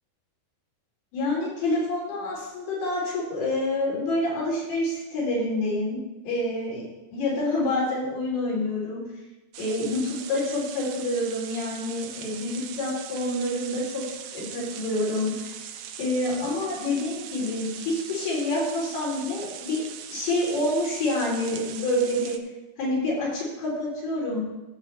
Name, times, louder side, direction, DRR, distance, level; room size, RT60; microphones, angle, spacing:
voice 1, 1.1-6.0 6.3-9.0 9.6-15.6 16.0-19.8 20.1-22.4 22.8-24.4, left 1 dB, 85° left, -5 dB, 5.3 m, -27 dB
sound 1, 9.5-22.4, right 9 dB, 80° right, 2.0 m, -40 dB
15.0 x 8.2 x 3.2 m, 1.0 s
omnidirectional pair, 4.5 m